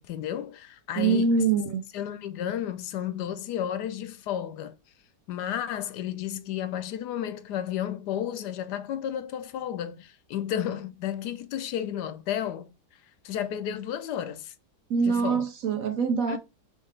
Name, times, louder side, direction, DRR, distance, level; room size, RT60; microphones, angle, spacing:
voice 1, 0.0-1.4 1.9-4.7 5.3-12.7 13.2-14.5 15.0-15.4 16.3-16.4, left 10 dB, 75° left, 1.2 m, -32 dB
voice 2, 1.0-1.8 14.9-16.4, right 5 dB, 65° right, 0.9 m, -24 dB
4.4 x 3.6 x 3.2 m
omnidirectional pair, 1.8 m